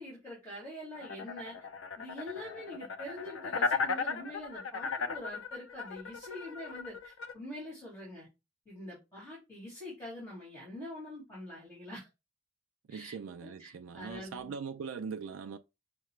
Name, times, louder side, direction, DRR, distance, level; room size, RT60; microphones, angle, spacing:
voice 1, 0.0-1.6 2.0-8.3 8.7-12.1 12.9-13.1 13.4-14.5, left 1 dB, 15° left, 2.2 m, -45 dB
sound 1, 1.0-7.3, left 4 dB, 80° left, 0.5 m, -36 dB
voice 2, 12.9-15.6, right 6 dB, 80° right, 0.3 m, -41 dB
5.7 x 2.1 x 3.1 m
head